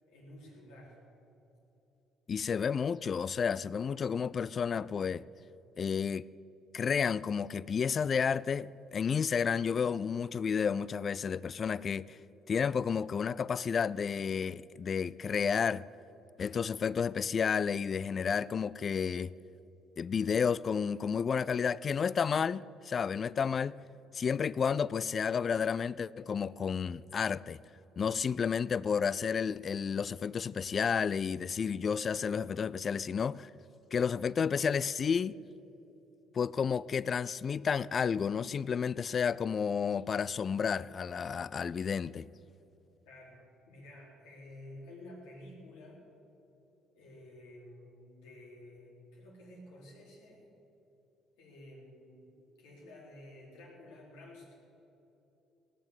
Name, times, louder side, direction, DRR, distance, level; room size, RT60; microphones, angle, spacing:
voice 1, 0.1-1.0 43.1-46.1 47.0-50.5 51.4-52.3 52.6-54.5, left 1 dB, 80° left, 3.7 m, -52 dB
voice 2, 2.3-5.2 5.8-6.2 6.7-12.2 12.5-15.8 16.4-19.3 20.0-23.8 24.1-27.6 28.0-33.5 33.9-35.4 36.3-42.3, left 6 dB, 45° left, 0.3 m, -31 dB
17.5 x 7.6 x 8.2 m
hypercardioid pair, 65°, 0 cm